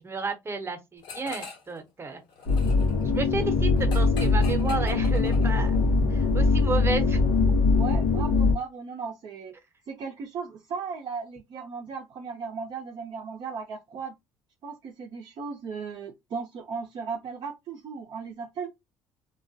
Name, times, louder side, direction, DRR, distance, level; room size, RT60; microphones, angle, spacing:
voice 1, 0.0-2.2 3.0-5.7 6.1-7.2, right 3 dB, 25° right, 0.8 m, -32 dB
sound 1, 1.0-1.8 2.1-5.9, left 5 dB, 60° left, 1.0 m, -43 dB
sound 2, 2.5-8.5, left 3 dB, 85° left, 0.7 m, -22 dB
voice 2, 7.7-9.5 9.9-14.1 14.6-18.7, right 5 dB, 55° right, 0.5 m, -36 dB
2.3 x 2.1 x 2.6 m
supercardioid pair, 75°, 9 cm